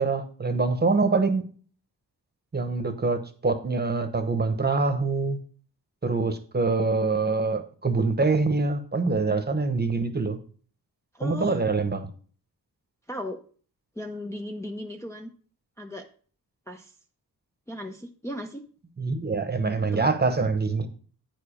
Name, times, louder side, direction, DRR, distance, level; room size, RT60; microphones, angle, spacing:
voice 1, 0.0-1.4 2.5-5.4 6.0-10.4 11.2-12.1 19.0-20.9, right 3 dB, 25° right, 8 dB, 1.0 m, -25 dB
voice 2, 11.1-11.6 13.1-13.4 14.0-15.3 15.8-16.1 16.7-16.9 17.7-18.6 19.9-20.1, left 1 dB, 10° left, 1 dB, 0.5 m, -36 dB
9.2 x 5.0 x 5.0 m, 0.43 s
wide cardioid pair, 135°, 37 cm